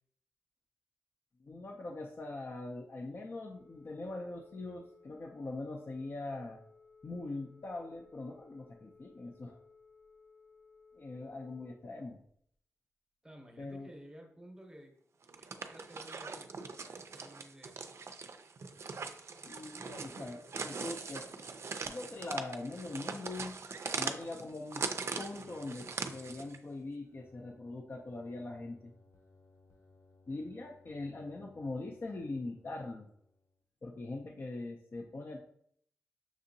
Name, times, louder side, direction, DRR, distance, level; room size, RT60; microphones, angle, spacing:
voice 1, 1.4-6.6 7.0-9.6 10.9-12.2 13.6-13.9 19.4-21.3 21.9-23.6 23.9-24.9 25.2-28.9 30.3-33.1 33.8-35.4, left 2 dB, 45° left, 2 dB, 0.4 m, -42 dB
Telephone, 3.4-11.8, left 4 dB, 85° left, 1.0 m, -61 dB
voice 2, 13.2-15.0 15.4-16.5 16.8-17.8, equal, 15° right, 3 dB, 0.8 m, -54 dB
sound 1, 15.2-26.6, right 4 dB, 55° right, 0.4 m, -41 dB
sound 2, 25.0-33.6, left 3 dB, 65° left, 1.0 m, -65 dB
6.0 x 2.7 x 2.6 m, 0.66 s
cardioid pair, 75°, 5 cm